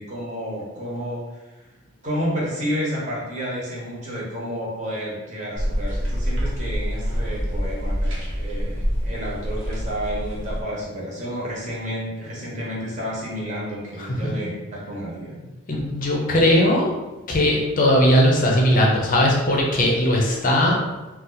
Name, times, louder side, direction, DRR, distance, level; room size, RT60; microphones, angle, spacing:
voice 1, 0.0-1.4 2.0-15.4, equal, 35° right, -5 dB, 1.0 m, -30 dB
sound 1, 5.6-10.6, equal, 65° right, 0.9 m, -26 dB
voice 2, 14.0-14.3 15.7-16.9 17.3-20.8, left 1 dB, 40° left, -2 dB, 0.6 m, -19 dB
2.6 x 2.4 x 3.9 m, 1.1 s
head